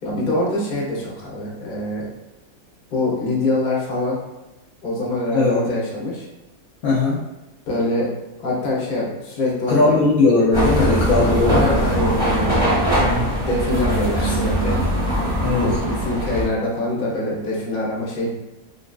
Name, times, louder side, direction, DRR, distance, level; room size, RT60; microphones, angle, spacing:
voice 1, 0.0-2.1 2.9-4.2 4.8-6.3 7.7-10.0 10.7-11.3 11.6-12.5 13.5-14.8 15.6-18.3, left 1 dB, 50° left, -4 dB, 0.6 m, -24 dB
voice 2, 6.8-7.2 9.7-11.7 13.0-13.3 15.4-15.7, left 3 dB, 70° left, -5 dB, 0.9 m, -18 dB
sound 1, 10.5-16.5, equal, 5° left, 0.9 m, -21 dB
2.7 x 2.5 x 2.2 m, 1.0 s
omnidirectional pair, 1.7 m